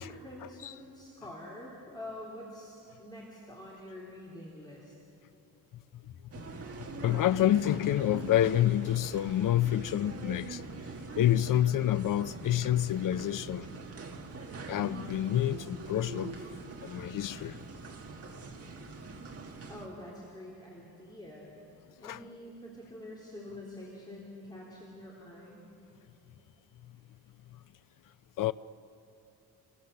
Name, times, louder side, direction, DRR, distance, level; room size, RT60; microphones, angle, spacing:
voice 1, 0.0-4.9 19.7-21.5 22.0-25.7, left 1 dB, 10° left, 3.3 m, -46 dB
sound 1, 6.3-19.9, right 3 dB, 40° right, 1.9 m, -43 dB
voice 2, 7.0-10.6 11.2-13.7 14.7-16.4 16.8-17.6 22.0-22.2 28.4-28.5, left 12 dB, 55° left, 0.6 m, -28 dB
29.0 x 23.0 x 6.8 m
wide cardioid pair, 155°, 38 cm